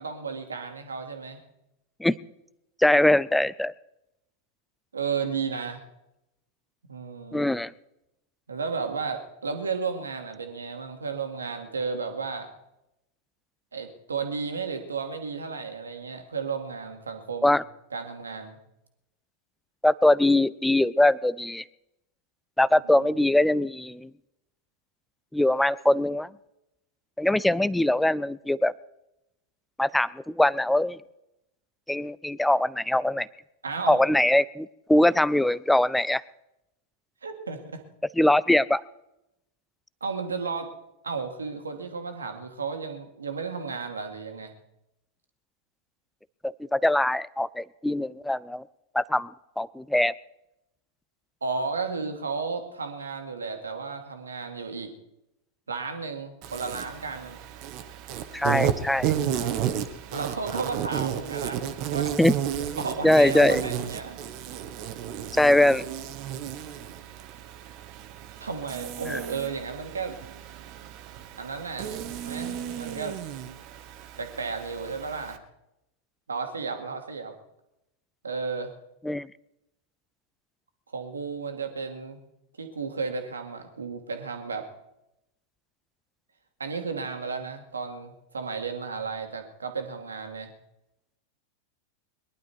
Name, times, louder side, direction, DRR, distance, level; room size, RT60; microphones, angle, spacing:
voice 1, 0.0-1.4 4.9-5.8 6.9-7.5 8.5-12.5 13.7-17.6 17.9-18.6 22.8-23.1 33.6-34.0 37.2-37.8 40.0-40.7 41.0-44.5 51.4-54.9 55.7-57.4 60.1-61.6 61.9-62.2 62.8-64.2 68.4-70.2 71.4-72.0 72.2-73.2 74.2-75.4 76.3-77.3 78.2-78.7 80.9-82.2 82.6-84.7 86.6-90.5, right 5 dB, 75° right, 5 dB, 2.1 m, -33 dB
voice 2, 2.8-3.7 7.3-7.7 17.4-17.6 19.8-21.6 22.6-24.1 25.3-26.3 27.2-28.7 29.8-31.0 31.9-33.3 33.9-36.2 38.2-38.8 46.4-48.6 48.9-49.3 49.6-50.1 58.3-59.1 62.2-62.3 63.0-63.6 65.3-65.8 69.1-69.2 79.0-79.3, left 1 dB, 5° left, 20 dB, 0.4 m, -22 dB
Insect, 56.4-75.4, right 9 dB, 45° right, 1.3 m, -33 dB
22.5 x 11.5 x 4.7 m, 0.87 s
figure-of-eight pair, 90°, 0 cm